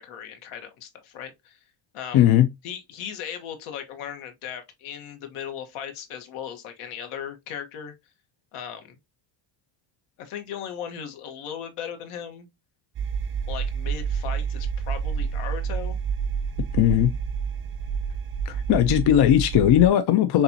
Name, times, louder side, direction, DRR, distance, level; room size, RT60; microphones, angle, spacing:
voice 1, 0.0-1.6 1.9-2.3 2.6-7.9 8.5-8.9 10.2-12.5 13.5-16.0, left 8 dB, 80° left, 1.5 m, -37 dB
voice 2, 2.1-2.5 16.8-17.1 18.5-20.4, left 11 dB, 55° left, 0.7 m, -18 dB
sound 1, 12.9-19.9, right 6 dB, 25° right, 0.7 m, -29 dB
6.7 x 2.7 x 2.8 m
cardioid pair, 130°, 50 cm